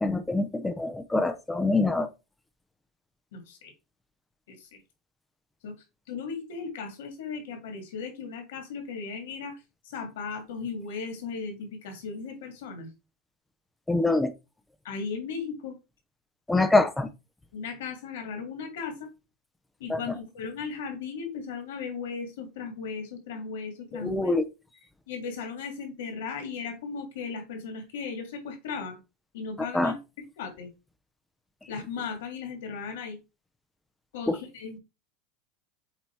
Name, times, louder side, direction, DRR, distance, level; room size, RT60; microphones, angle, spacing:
voice 1, 0.0-2.1 13.9-14.3 16.5-17.1 19.9-20.0 23.9-24.4 29.7-29.9 34.3-34.4, left 2 dB, 5° left, 0.4 m, -24 dB
voice 2, 3.3-3.7 4.5-4.8 5.6-5.7 6.1-9.5 9.9-12.9 14.8-15.8 17.5-19.1 19.8-24.3 25.1-29.0 29.3-30.0 30.4-30.7 31.7-33.2 34.1-34.8, left 5 dB, 85° left, 2.0 m, -36 dB
8.0 x 2.7 x 4.4 m
supercardioid pair, 165°, 0 cm